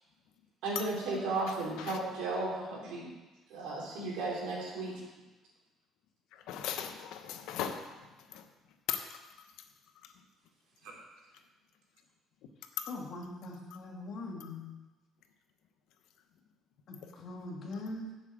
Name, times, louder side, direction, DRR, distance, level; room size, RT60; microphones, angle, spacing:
voice 1, 0.6-3.1 3.5-5.0, right 3 dB, 85° right, -4 dB, 3.7 m, -35 dB
voice 2, 1.5-2.0 6.3-7.9 8.3-8.4 8.9-9.2 12.8-12.9, left 9 dB, 80° left, 7 dB, 1.0 m, -38 dB
voice 3, 12.9-14.8 16.9-18.1, left 2 dB, 45° left, -1 dB, 2.0 m, -42 dB
7.3 x 7.2 x 8.2 m, 1.1 s
cardioid pair, 175°, 0 cm